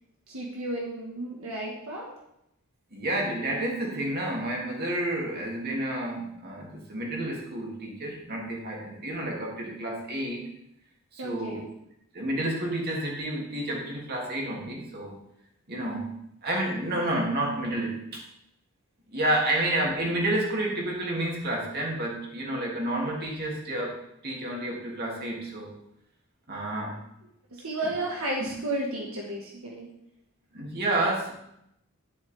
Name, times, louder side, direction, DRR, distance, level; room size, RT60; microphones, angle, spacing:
voice 1, 0.3-2.1 11.2-11.6 27.5-29.9, right 1 dB, 80° right, -2 dB, 1.7 m, -33 dB
voice 2, 2.9-10.5 11.1-11.6 12.1-15.2 15.7-18.0 19.1-23.9 24.2-25.7 26.5-27.0 28.4-28.5 30.5-31.3, right 1 dB, 50° right, -2 dB, 2.9 m, -30 dB
11.5 x 10.0 x 3.6 m, 0.78 s
head